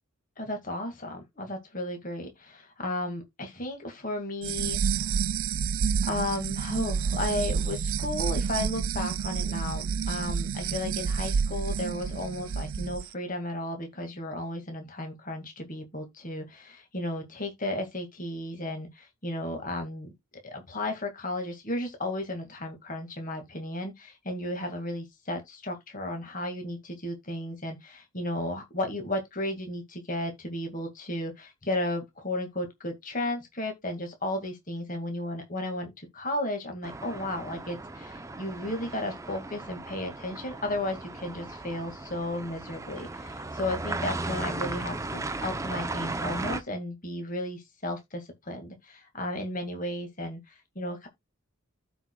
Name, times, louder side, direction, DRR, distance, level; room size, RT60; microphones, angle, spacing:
voice 1, 0.4-5.2 6.0-20.1 20.4-51.1, left 1 dB, 40° left, 2.0 m, -34 dB
sound 1, 4.4-13.0, right 6 dB, 70° right, 0.4 m, -29 dB
sound 2, 36.8-46.6, right 2 dB, 15° right, 0.6 m, -36 dB
14.5 x 4.9 x 2.3 m
head